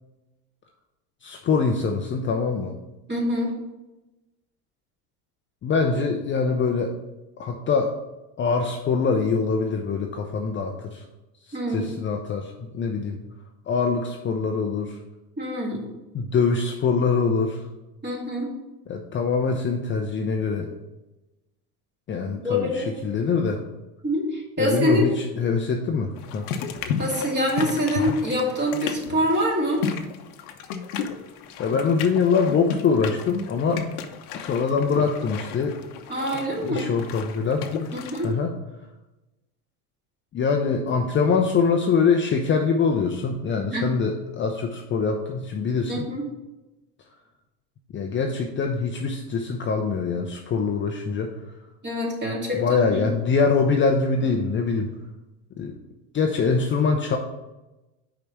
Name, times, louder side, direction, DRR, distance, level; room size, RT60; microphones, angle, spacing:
voice 1, 1.2-2.7 5.6-6.9 7.4-8.0 8.4-11.0 11.4-13.2 13.7-15.0 16.1-17.7 18.9-20.7 22.1-23.6 24.6-26.5 31.6-33.8 34.3-35.7 36.6-37.9 38.2-38.5 40.3-46.1 47.9-51.3 52.5-54.9 55.6-55.7 56.1-57.2, left 5 dB, 25° left, 3 dB, 0.6 m, -24 dB
voice 2, 3.1-3.5 11.5-11.9 15.4-15.9 18.0-18.5 22.4-22.9 24.0-25.2 27.0-29.8 36.1-37.0 37.9-38.3 43.7-43.8 45.9-46.3 51.8-53.1, equal, 25° right, -2 dB, 2.4 m, -25 dB
sound 1, 26.2-38.3, left 6 dB, 75° left, 0.9 m, -33 dB
5.3 x 5.0 x 6.0 m, 1.0 s
supercardioid pair, 100°, 45 cm